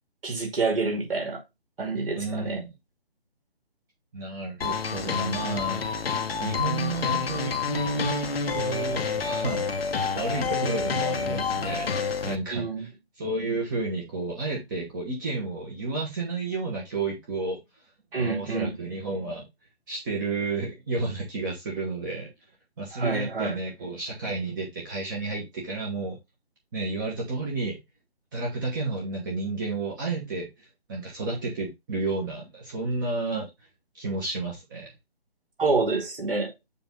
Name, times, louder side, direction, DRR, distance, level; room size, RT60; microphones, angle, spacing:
voice 1, 0.2-1.4 1.8-2.6 12.5-12.8 18.1-18.7 22.9-23.6 35.6-36.5, right 3 dB, 65° right, 2.5 m, -27 dB
voice 2, 2.1-2.7 4.1-5.8 6.4-12.9 13.2-17.6 18.2-19.5 19.9-22.3 22.8-26.2 26.7-27.8 28.3-33.5 33.9-34.9, right 3 dB, 20° right, 1.1 m, -31 dB
sound 1, 4.6-12.4, left 5 dB, 70° left, 1.0 m, -28 dB
6.9 x 2.7 x 5.4 m
figure-of-eight pair, 155°, 31 cm